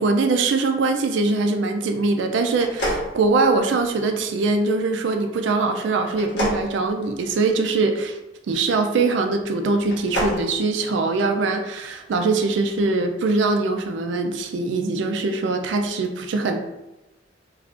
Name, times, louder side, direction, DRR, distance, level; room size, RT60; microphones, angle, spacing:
voice 1, 0.0-8.2 8.5-16.6, right 3 dB, 70° right, 5 dB, 0.3 m, -22 dB
sound 1, 2.5-3.9 6.1-7.7 9.8-10.4, equal, 65° left, 0.9 m, -28 dB
2.4 x 2.4 x 3.4 m, 1.0 s
head